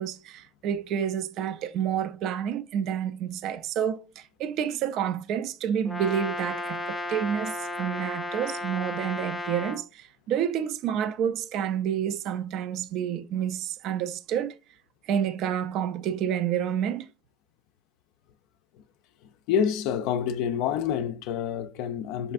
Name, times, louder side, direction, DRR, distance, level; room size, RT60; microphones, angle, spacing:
voice 1, 0.0-14.5 15.1-17.1, right 9 dB, 55° right, 0.4 m, -29 dB
Brass instrument, 5.9-9.9, left 1 dB, 5° left, 0.6 m, -34 dB
voice 2, 19.5-22.3, left 8 dB, 70° left, 0.4 m, -27 dB
5.4 x 3.3 x 2.4 m
supercardioid pair, 125°, 0 cm